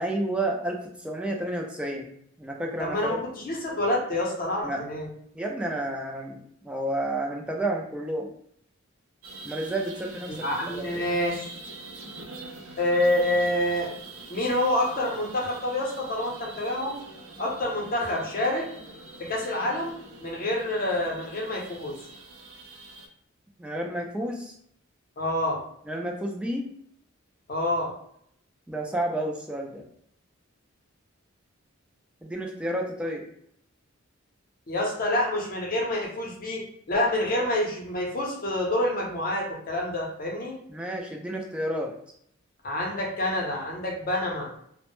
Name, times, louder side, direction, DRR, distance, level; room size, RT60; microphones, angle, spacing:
voice 1, 0.0-2.1 2.4-3.2 4.6-4.8 5.4-6.4 6.6-8.3 9.4-11.0 23.6-24.5 25.9-26.7 28.7-29.8 32.2-33.2 40.7-41.9, right 1 dB, 5° right, 0 dB, 0.3 m, -31 dB
voice 2, 2.8-5.1 10.3-11.6 12.8-13.9 14.3-17.0 17.4-18.7 19.2-19.9 20.2-21.9 25.2-25.6 27.5-27.9 34.7-40.5 42.6-44.5, left 1 dB, 45° left, -1 dB, 0.6 m, -27 dB
sound 1, 9.2-23.1, right 3 dB, 75° right, 0.5 m, -44 dB
2.1 x 2.0 x 2.9 m, 0.69 s
head